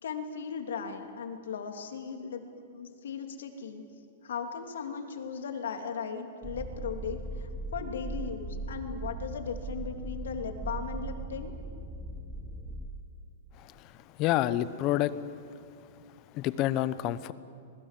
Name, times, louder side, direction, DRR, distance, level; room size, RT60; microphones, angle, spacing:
voice 1, 0.0-3.8 4.2-11.5, left 6 dB, 85° left, 5 dB, 3.0 m, -37 dB
sound 1, 6.4-12.9, right 2 dB, 15° right, 1.4 m, -39 dB
voice 2, 13.6-13.9 14.2-15.2 16.3-17.3, left 13 dB, 30° left, 16 dB, 0.7 m, -28 dB
26.0 x 21.0 x 7.6 m, 2.4 s
supercardioid pair, 165°, 0 cm